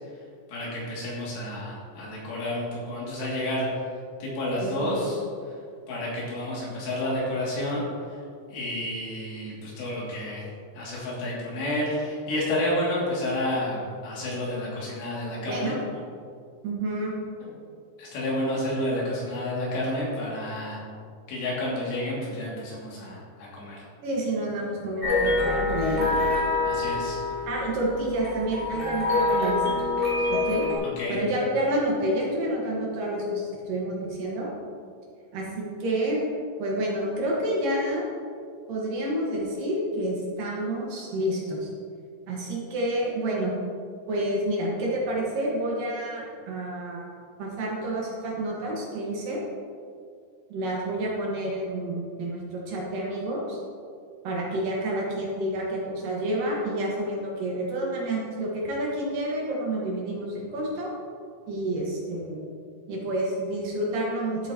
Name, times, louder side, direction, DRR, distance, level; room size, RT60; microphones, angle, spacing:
voice 1, 0.5-3.7 4.2-5.2 5.9-7.8 8.5-10.4 10.8-15.8 17.4-17.5 18.0-20.8 21.3-23.2 23.5-23.8 26.6-27.2 30.8-31.2, left 1 dB, 90° left, -6 dB, 4.7 m, -30 dB
voice 2, 4.6-5.1 15.5-16.0 16.6-17.2 24.0-26.2 27.5-29.8 30.3-30.7 31.1-34.5 35.3-36.2 36.6-38.1 38.7-41.7 42.3-43.5 44.1-49.4 50.5-53.6 54.2-60.9 61.5-62.5 62.9-64.5, right 1 dB, 65° right, -3 dB, 2.9 m, -29 dB
sound 1, 25.0-30.7, left 3 dB, 25° right, 1.3 m, -26 dB
13.0 x 8.1 x 2.9 m, 2.2 s
omnidirectional pair, 4.7 m